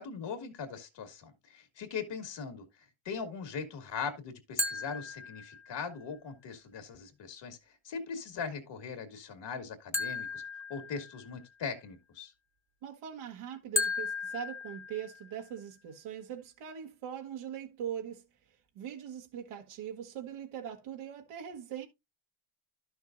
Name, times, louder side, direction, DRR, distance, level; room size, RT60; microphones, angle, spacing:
voice 1, 0.0-10.4 10.7-12.3, left 5 dB, 55° left, 2.2 m, -40 dB
sound 1, 4.6-5.9 9.9-11.5 13.8-15.5, left 3 dB, 5° left, 1.0 m, -36 dB
voice 2, 12.8-18.2 18.7-21.9, right 9 dB, 80° right, 1.5 m, -41 dB
12.0 x 6.4 x 2.6 m
cardioid pair, 135°, 49 cm